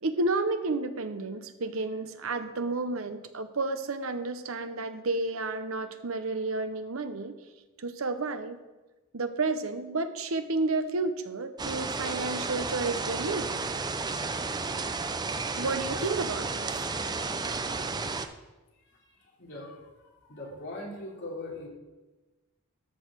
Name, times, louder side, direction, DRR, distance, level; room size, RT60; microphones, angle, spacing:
voice 1, 0.0-7.3 7.8-8.6 9.1-13.5 15.6-16.9, right 3 dB, 70° right, 9 dB, 0.8 m, -31 dB
Hail and Rain in the Courtyard, 11.6-18.3, right 4 dB, 20° right, 0.5 m, -32 dB
voice 2, 18.7-21.7, left 1 dB, 55° left, -4 dB, 3.3 m, -42 dB
13.0 x 4.7 x 6.2 m, 1.1 s
head